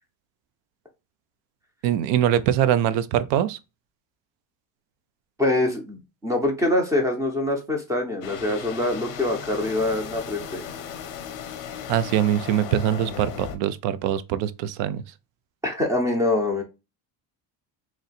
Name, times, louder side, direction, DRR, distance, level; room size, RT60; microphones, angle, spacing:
voice 1, 1.8-3.6 11.9-15.0, right 11 dB, 75° right, 0.5 m, -23 dB
voice 2, 5.4-10.6 15.6-16.6, left 2 dB, 5° right, 0.6 m, -24 dB
sound 1, 8.2-13.6, left 8 dB, 45° left, 0.6 m, -36 dB
3.1 x 2.7 x 4.1 m
cardioid pair, 175°, 45 cm